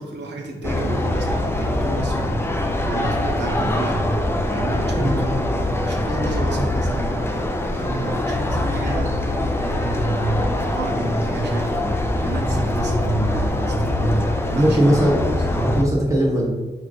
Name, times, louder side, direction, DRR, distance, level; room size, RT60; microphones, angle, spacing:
voice 1, 0.0-2.4 2.9-4.2 4.5-5.5 5.8-7.3 7.7-14.9 15.5-15.8, right 2 dB, 80° right, 1 dB, 0.8 m, -29 dB
sound 1, 0.6-15.8, left 1 dB, 15° left, 0.4 m, -23 dB
voice 2, 5.0-5.3 6.5-6.7 14.5-15.3 15.6-16.5, equal, 20° right, -4 dB, 0.8 m, -19 dB
4.3 x 2.5 x 3.7 m, 1.3 s
wide cardioid pair, 90°, 18 cm